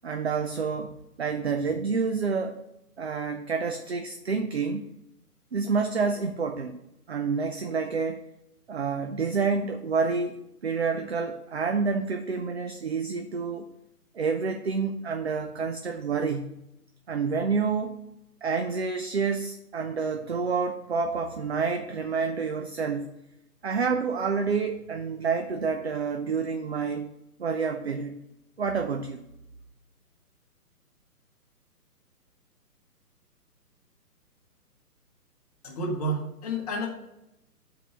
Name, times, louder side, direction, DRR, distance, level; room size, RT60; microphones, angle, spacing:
voice 1, 0.0-2.6 3.0-4.9 5.5-6.8 7.1-8.2 8.7-13.7 14.1-16.6 17.1-17.9 18.4-23.1 23.6-27.1 27.4-28.1 28.6-29.3, right 5 dB, 45° right, 6 dB, 0.5 m, -28 dB
voice 2, 35.6-36.9, right 1 dB, 25° left, 0 dB, 1.2 m, -30 dB
6.5 x 4.6 x 5.3 m, 0.87 s
figure-of-eight pair, 135°, 47 cm